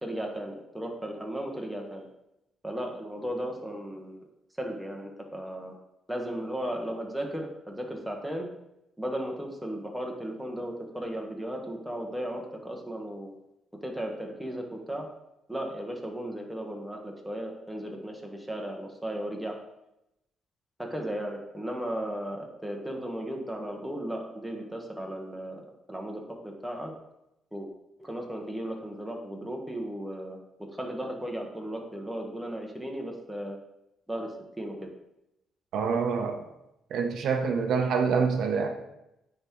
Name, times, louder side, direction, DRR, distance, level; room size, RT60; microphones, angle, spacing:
voice 1, 0.0-2.1 2.6-4.2 4.6-5.7 6.1-8.5 9.0-13.3 13.8-15.1 15.5-19.6 20.8-25.6 25.9-26.9 27.5-27.7 28.0-33.6 34.1-34.9, right 1 dB, 5° right, 1 dB, 1.2 m, -35 dB
voice 2, 35.7-36.4 36.9-38.7, right 5 dB, 75° right, 5 dB, 0.6 m, -26 dB
9.4 x 3.6 x 3.0 m, 0.87 s
cardioid pair, 90°, 0 cm